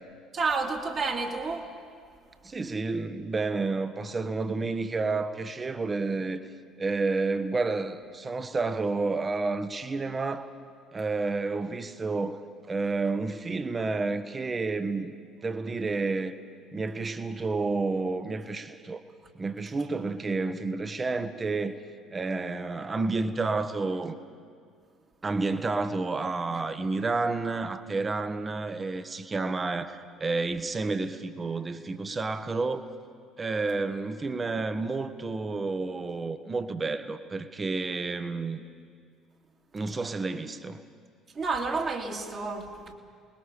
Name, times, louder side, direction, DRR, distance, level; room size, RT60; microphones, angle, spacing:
voice 1, 0.3-1.7 41.3-42.9, right 4 dB, 45° right, 2.4 m, -30 dB
voice 2, 2.4-6.4 6.8-10.5 10.9-12.4 12.7-15.1 15.4-16.3 16.7-19.0 19.3-21.8 22.1-24.2 25.2-32.9 33.4-38.6 39.7-40.8, right 3 dB, 25° right, 1.3 m, -30 dB
29.0 x 20.5 x 5.1 m
figure-of-eight pair, 55°, 0 cm